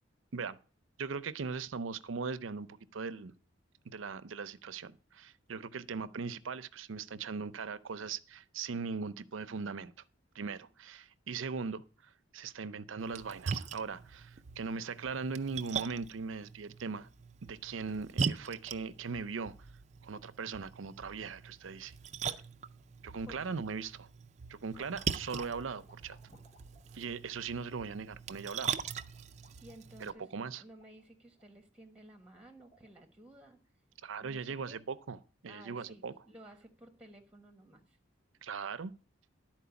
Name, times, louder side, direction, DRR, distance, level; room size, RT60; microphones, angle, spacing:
voice 1, 1.0-3.3 3.9-9.9 10.3-11.8 12.3-17.1 17.4-19.5 20.0-21.9 23.0-24.1 24.5-26.2 26.9-28.8 30.0-30.6 34.0-36.1 38.4-38.9, right 5 dB, 80° right, 0.6 m, -39 dB
Splash splatter, 13.0-30.1, right 6 dB, 35° right, 0.4 m, -41 dB
sound 1, 24.6-28.0 28.8-31.5 32.1-33.4, left 1 dB, 35° left, 2.1 m, -66 dB
voice 2, 29.6-30.3 30.6-33.6 34.2-34.8 35.5-38.0, right 1 dB, 5° right, 1.1 m, -55 dB
11.0 x 4.5 x 6.9 m
head